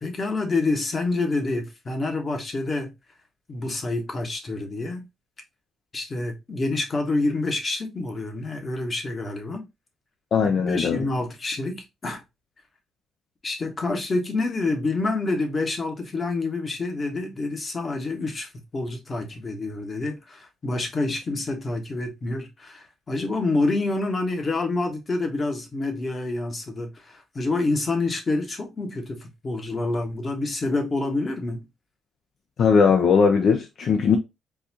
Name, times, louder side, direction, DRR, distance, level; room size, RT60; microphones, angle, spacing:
voice 1, 0.0-2.9 3.5-5.1 5.9-9.7 10.4-12.2 13.4-31.7, left 2 dB, 35° left, 1.1 m, -27 dB
voice 2, 10.3-11.1 32.6-34.2, left 6 dB, 60° left, 0.5 m, -19 dB
3.9 x 2.5 x 2.8 m
cardioid pair, 90°, 0 cm